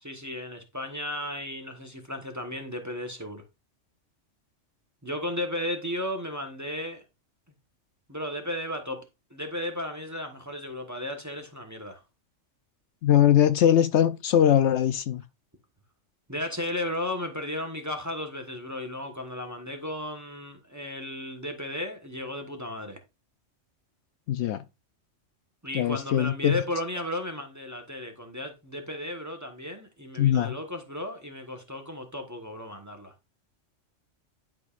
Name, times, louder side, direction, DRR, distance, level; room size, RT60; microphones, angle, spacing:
voice 1, 0.0-3.4 5.0-7.0 8.1-9.0 9.3-12.0 16.3-23.0 25.6-33.1, left 1 dB, 15° right, 1.1 m, -34 dB
voice 2, 13.0-15.2 24.3-24.6 25.7-26.5 30.2-30.5, left 10 dB, 70° left, 0.8 m, -21 dB
11.0 x 5.1 x 2.4 m
omnidirectional pair, 1.3 m